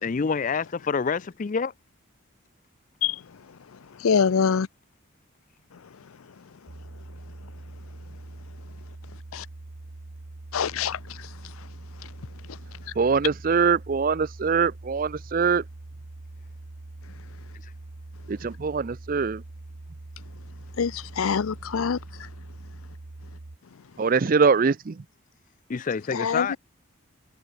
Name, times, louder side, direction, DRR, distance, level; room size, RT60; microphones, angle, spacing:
voice 1, 0.0-1.7 12.8-13.0 17.5-17.7 25.7-26.6, left 5 dB, 40° left, 0.4 m, -27 dB
voice 2, 4.0-4.7 9.3-9.5 10.5-11.2 20.8-22.0 26.1-26.6, left 6 dB, 90° left, 0.5 m, -24 dB
sound 1, 6.7-23.6, right 2 dB, 65° right, 1.1 m, -43 dB
voice 3, 13.0-15.6 18.3-19.4 24.0-25.0, right 5 dB, 40° right, 0.5 m, -23 dB
head